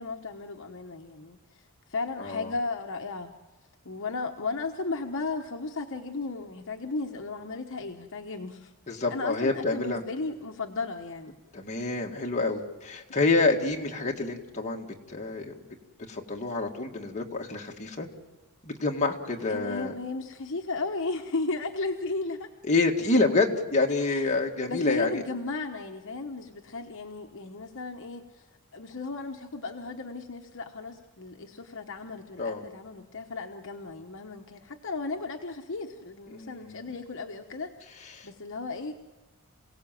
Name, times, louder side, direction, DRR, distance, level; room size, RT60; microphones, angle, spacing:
voice 1, 0.0-1.6 1.9-3.3 3.8-8.7 9.1-11.3 19.5-22.5 24.0-24.3 24.7-28.5 28.7-38.9, left 3 dB, 60° left, 3 dB, 1.1 m, -35 dB
voice 2, 2.2-2.5 8.9-10.0 11.5-15.6 16.1-18.1 18.6-19.9 22.6-25.2 32.4-32.6 36.3-36.9 38.1-38.3, left 3 dB, 30° left, 1 dB, 2.1 m, -27 dB
28.0 x 17.5 x 7.6 m, 1.3 s
head